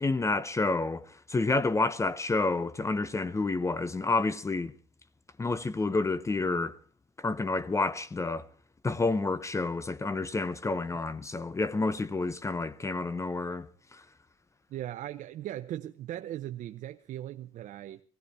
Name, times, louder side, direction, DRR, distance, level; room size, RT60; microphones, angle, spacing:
voice 1, 0.0-4.7 5.4-6.8 7.2-8.5 8.8-14.0, left 3 dB, 20° left, 0.8 m, -29 dB
voice 2, 14.7-18.0, right 12 dB, 60° right, 0.7 m, -38 dB
16.5 x 16.5 x 4.4 m
cardioid pair, 90°, 14 cm